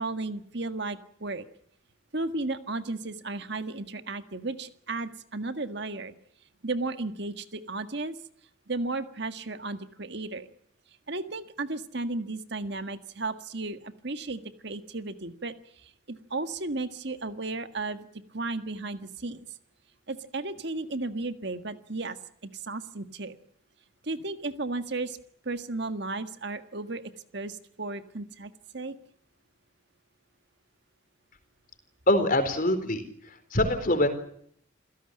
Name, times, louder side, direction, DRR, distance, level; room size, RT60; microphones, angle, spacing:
voice 1, 0.0-1.5 2.1-6.1 6.6-8.2 8.7-10.5 11.1-15.5 15.8-18.1 18.3-19.5 20.1-22.2 22.5-23.4 24.0-25.2 25.5-29.0, right 2 dB, 55° right, 9 dB, 1.7 m, -34 dB
voice 2, 32.1-33.0 33.5-34.1, left 1 dB, 45° left, 9 dB, 4.2 m, -23 dB
28.0 x 17.0 x 8.8 m, 0.67 s
head